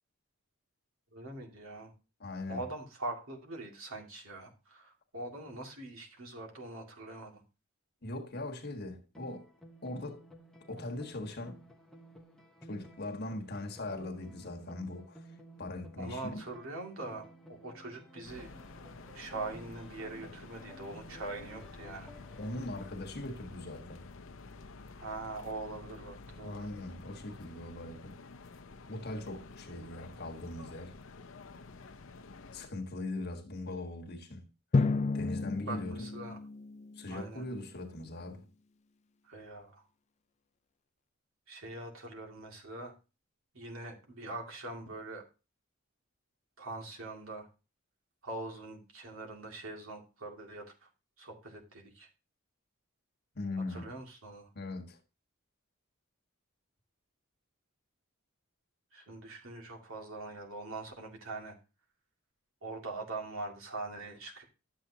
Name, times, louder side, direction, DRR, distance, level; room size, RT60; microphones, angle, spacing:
voice 1, 1.1-1.9 2.5-7.4 16.0-18.5 19.1-22.2 24.9-26.7 35.7-36.4 37.1-37.4 39.2-39.9 41.5-42.9 43.5-45.2 46.6-47.5 48.2-50.9 51.2-52.1 53.7-54.5 58.9-61.6 62.6-64.4, right 2 dB, 75° right, 2.3 m, -43 dB
voice 2, 2.2-2.6 8.0-9.5 9.8-10.2 10.7-11.6 12.7-15.3 15.6-16.4 22.4-24.0 26.4-28.2 28.9-31.0 32.5-34.5 35.1-36.1 37.0-38.5 53.3-53.9 54.5-55.0, left 2 dB, 50° left, 1.4 m, -40 dB
sound 1, 9.1-22.9, equal, 5° left, 1.0 m, -54 dB
sound 2, 18.3-32.7, left 3 dB, 65° left, 0.7 m, -50 dB
Drum, 34.7-37.5, left 3 dB, 30° left, 0.3 m, -32 dB
12.0 x 7.4 x 2.8 m
head